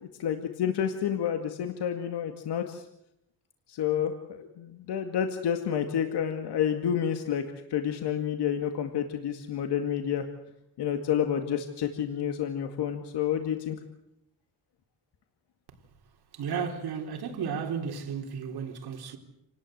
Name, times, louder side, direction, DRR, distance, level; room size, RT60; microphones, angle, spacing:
voice 1, 0.0-2.8 3.7-7.4 7.7-10.3 10.8-13.8, left 9 dB, 80° left, 2.2 m, -29 dB
voice 2, 16.3-19.2, right 6 dB, 70° right, 4.0 m, -33 dB
29.0 x 19.5 x 8.0 m
cardioid pair, 160°, 40 cm